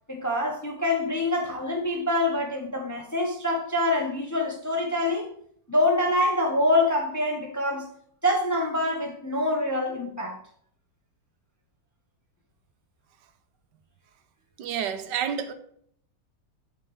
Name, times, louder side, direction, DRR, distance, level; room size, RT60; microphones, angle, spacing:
voice 1, 0.1-5.3 5.7-7.9 8.2-10.4, left 1 dB, 15° left, 0.7 m, -25 dB
voice 2, 14.6-15.5, right 8 dB, 90° right, 1.4 m, -29 dB
6.6 x 5.5 x 4.9 m
omnidirectional pair, 1.8 m